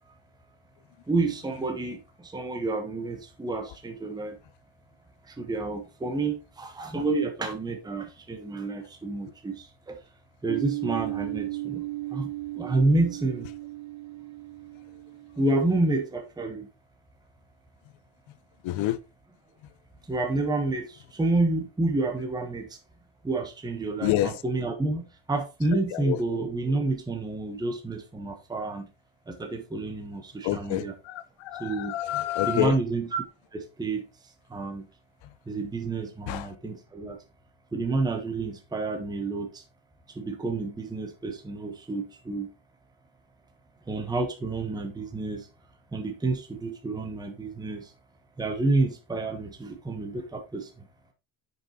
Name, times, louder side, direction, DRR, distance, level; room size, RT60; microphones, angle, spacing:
voice 1, 1.1-4.4 5.2-10.0 10.4-11.8 12.1-13.5 15.4-16.7 20.1-22.8 23.2-28.9 29.3-30.9 31.6-31.9 32.5-33.2 33.5-34.9 35.5-37.2 37.7-39.6 40.1-42.5 43.9-45.5 45.9-47.9 48.4-50.9, right 2 dB, 10° right, 1.0 m, -29 dB
sound 1, 10.5-16.0, right 18 dB, 35° right, 0.7 m, -36 dB
voice 2, 18.6-19.0 24.0-24.3 25.9-26.2 30.4-32.8 36.3-36.5, left 14 dB, 70° left, 0.9 m, -28 dB
9.7 x 5.7 x 2.8 m
cardioid pair, 175°, 48 cm